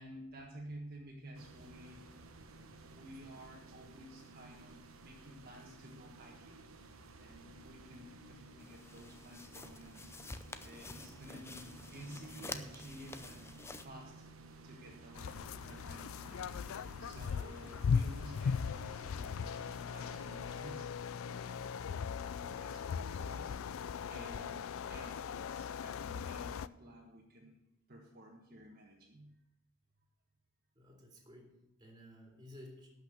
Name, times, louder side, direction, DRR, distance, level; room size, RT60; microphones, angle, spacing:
voice 1, 0.0-2.1 2.8-6.6 7.2-10.1 10.6-14.1 14.6-21.6 22.4-23.6 24.1-27.5 27.9-29.4, equal, 45° right, -2 dB, 1.5 m, -53 dB
sound 1, 1.3-20.8, right 2 dB, 80° right, 1.1 m, -55 dB
sound 2, 8.6-13.9, left 3 dB, 10° left, 0.5 m, -49 dB
sound 3, 15.1-26.7, left 6 dB, 75° left, 0.4 m, -38 dB
voice 2, 30.7-33.0, left 1 dB, 20° right, 0 dB, 2.6 m, -55 dB
12.0 x 5.7 x 8.0 m, 0.91 s
head